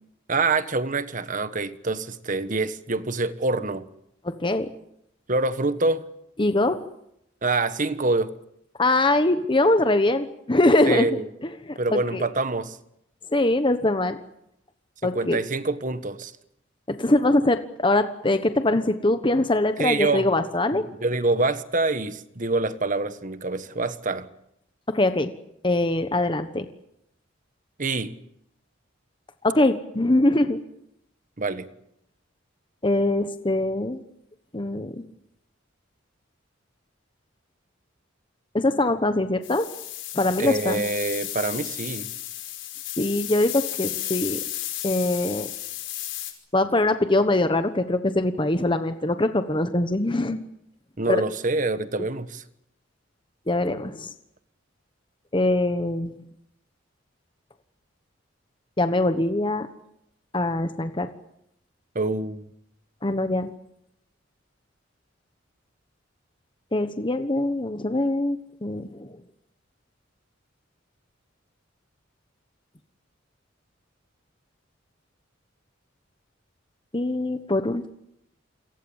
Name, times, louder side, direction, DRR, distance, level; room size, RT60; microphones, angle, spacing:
voice 1, 0.3-3.9 5.3-6.0 7.4-8.3 10.8-11.3 11.8-12.8 15.0-16.3 19.8-20.3 20.7-24.3 27.8-28.1 31.4-31.7 40.4-42.1 51.0-52.4 61.9-62.4, right 3 dB, 40° right, 1.4 m, -26 dB
voice 2, 4.2-4.7 6.4-6.8 8.8-12.2 13.3-14.2 15.0-15.4 17.0-20.8 24.9-25.3 25.6-26.7 29.4-30.6 32.8-34.0 34.5-35.0 38.5-39.7 40.1-40.8 43.0-44.4 44.8-45.5 46.5-50.4 51.1-51.2 53.5-54.1 55.3-56.1 58.8-59.6 60.3-61.1 63.0-63.5 66.7-69.2 76.9-77.9, left 2 dB, 25° left, 1.1 m, -23 dB
sound 1, 39.4-46.3, left 13 dB, 65° left, 5.3 m, -33 dB
28.5 x 23.0 x 7.3 m
head